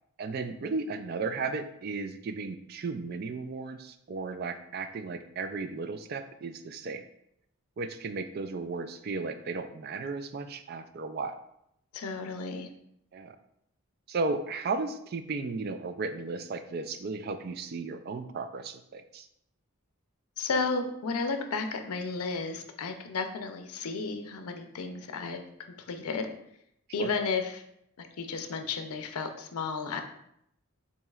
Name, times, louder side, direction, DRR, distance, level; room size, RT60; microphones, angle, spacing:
voice 1, 0.2-7.0 7.8-11.4 13.1-13.4 14.1-19.3 27.0-27.1, right 4 dB, 45° right, 9 dB, 0.3 m, -35 dB
voice 2, 11.9-12.7 20.4-25.4 25.8-26.3 26.9-27.6 28.0-30.0, left 4 dB, 80° left, 6 dB, 0.5 m, -33 dB
7.1 x 2.9 x 2.4 m, 0.76 s
head